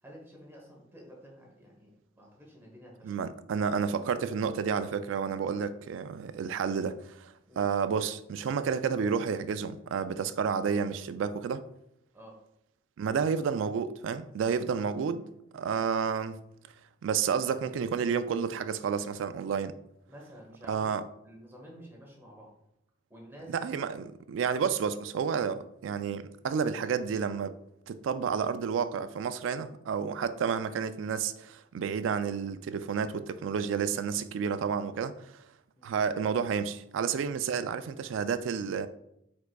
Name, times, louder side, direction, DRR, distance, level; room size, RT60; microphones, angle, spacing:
voice 1, 0.0-3.2 7.5-7.6 12.1-12.4 20.1-21.0 21.2-22.5 23.1-23.7 35.8-35.9, equal, 10° right, 1.1 m, -50 dB
voice 2, 3.0-11.6 13.0-16.4 17.0-19.7 20.7-21.0 23.5-27.5 27.9-35.3 35.8-38.9, right 6 dB, 75° right, 0.3 m, -30 dB
4.7 x 4.6 x 2.3 m
head